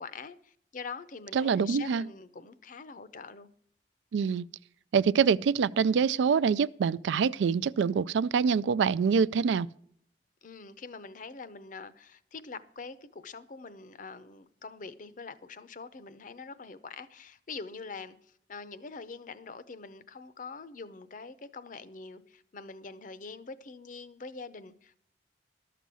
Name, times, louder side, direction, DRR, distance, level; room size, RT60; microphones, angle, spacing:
voice 1, 0.0-3.5 10.4-25.0, left 4 dB, 45° left, 0.6 m, -44 dB
voice 2, 1.3-2.0 4.1-4.4 4.9-9.7, right 6 dB, 80° right, 0.3 m, -25 dB
12.0 x 6.8 x 6.2 m
head